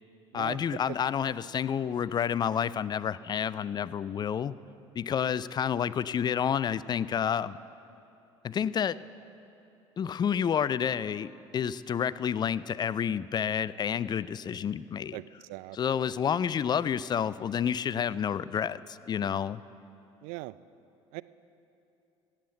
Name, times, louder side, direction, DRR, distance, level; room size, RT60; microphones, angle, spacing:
voice 1, 0.3-4.5 5.0-7.6 8.4-9.0 10.0-15.2 15.7-19.6, left 8 dB, 30° left, 18 dB, 0.4 m, -29 dB
voice 2, 15.1-16.2 20.2-20.6 21.1-21.2, right 21 dB, 65° right, 17 dB, 0.4 m, -41 dB
15.5 x 7.3 x 7.8 m, 2.8 s
hypercardioid pair, 60°, 15 cm